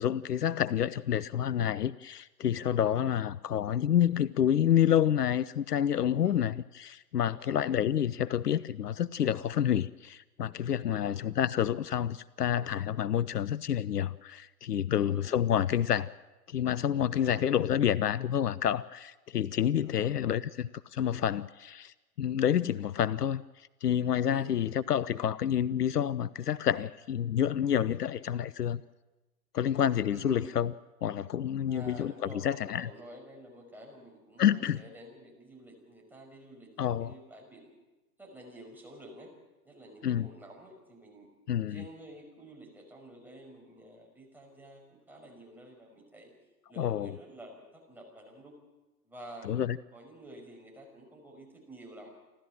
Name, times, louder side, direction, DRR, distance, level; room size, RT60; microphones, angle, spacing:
voice 1, 0.0-16.1 16.5-28.8 29.5-30.7 31.0-32.9 34.4-34.8 36.8-37.1 40.0-40.3 41.5-41.8 46.8-47.2 49.4-49.8, left 10 dB, 70° left, 20 dB, 0.7 m, -28 dB
voice 2, 10.8-11.2 14.9-15.4 17.1-17.4 19.8-20.1 24.3-24.7 30.1-30.5 31.7-37.7 38.2-39.3 39.6-41.3 41.7-46.3 46.7-48.5 49.0-49.6 49.9-52.1, right 1 dB, 5° right, -1 dB, 5.7 m, -50 dB
29.0 x 13.0 x 8.9 m, 1.1 s
figure-of-eight pair, 110°, 48 cm